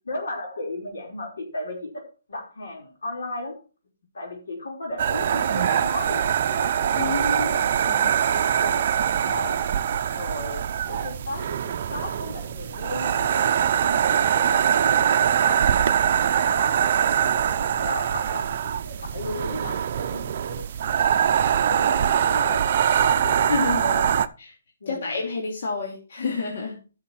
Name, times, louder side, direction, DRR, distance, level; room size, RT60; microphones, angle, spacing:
voice 1, 0.0-2.0 2.3-3.6 4.1-7.7 8.2-8.9 9.2-9.7 10.1-15.8 16.3-20.6 21.5-24.2 24.8-25.2, left 2 dB, 85° left, 1 dB, 4.9 m, -36 dB
sound 1, 5.0-24.3, right 9 dB, 45° right, 0.6 m, -23 dB
voice 2, 7.0-7.5 7.8-8.1 23.5-23.8 24.9-26.8, left 4 dB, 60° left, -1 dB, 2.8 m, -28 dB
12.5 x 6.4 x 4.3 m, 0.35 s
hypercardioid pair, 160°, 0 cm